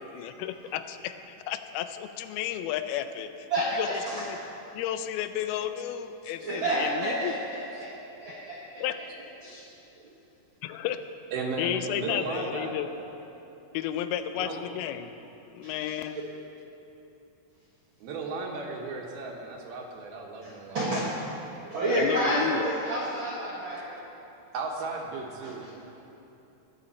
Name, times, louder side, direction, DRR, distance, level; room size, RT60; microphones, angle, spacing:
voice 1, 0.1-1.2 1.5-3.5 3.7-4.4 4.7-7.3 8.8-9.0 10.6-11.0 11.6-12.9 13.7-15.1 15.5-16.2 21.9-22.7, left 11 dB, 90° left, 10 dB, 2.5 m, -32 dB
voice 2, 3.5-4.2 6.4-8.8 9.4-9.7 10.0-10.1 15.6-15.9 20.4-24.0 25.4-25.7, right 1 dB, 60° right, -7 dB, 1.3 m, -30 dB
voice 3, 11.3-11.7 12.0-12.7 14.4-14.6 18.0-21.0 24.5-25.6, right 4 dB, 80° right, 1 dB, 3.0 m, -35 dB
21.0 x 7.0 x 4.2 m, 2.9 s
omnidirectional pair, 4.3 m